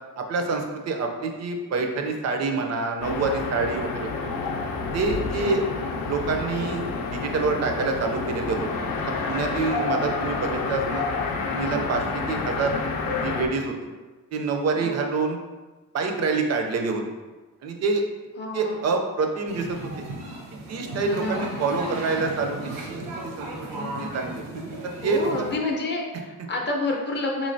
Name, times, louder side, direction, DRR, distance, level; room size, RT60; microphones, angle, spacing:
voice 1, 0.2-4.1 4.9-5.6 6.1-6.8 7.1-8.7 9.3-11.0 11.5-12.7 13.2-13.7 14.3-15.4 15.9-17.0 17.6-18.0 18.5-20.0 20.5-23.0 23.4-23.5 24.1-24.4 24.8-25.5, right 4 dB, 50° right, 3 dB, 0.4 m, -26 dB
sound 1, 3.0-13.5, left 4 dB, 85° left, 0.5 m, -29 dB
voice 2, 18.4-18.9 21.0-21.5 25.0-27.5, left 2 dB, 30° left, 0 dB, 0.5 m, -29 dB
sound 2, 19.5-25.6, right 1 dB, 85° right, 0.9 m, -35 dB
3.8 x 3.1 x 2.6 m, 1.3 s
wide cardioid pair, 175°, 34 cm